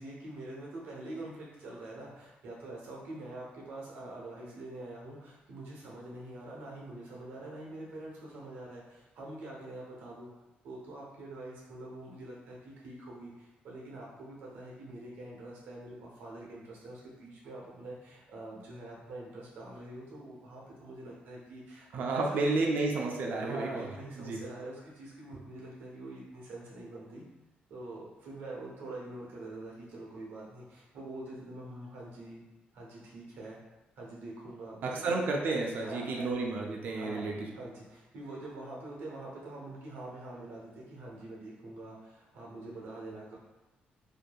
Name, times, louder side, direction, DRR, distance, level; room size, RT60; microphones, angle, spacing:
voice 1, 0.0-10.3 10.6-22.5 23.4-27.3 27.7-32.4 32.7-33.6 34.0-35.2 35.8-36.3 36.9-43.4, right 2 dB, 85° right, -4 dB, 0.8 m, -45 dB
voice 2, 21.9-23.8 24.2-24.4 34.8-37.4, right 3 dB, 60° right, 0 dB, 0.4 m, -31 dB
2.6 x 2.5 x 2.2 m, 1.0 s
cardioid pair, 125°, 3 cm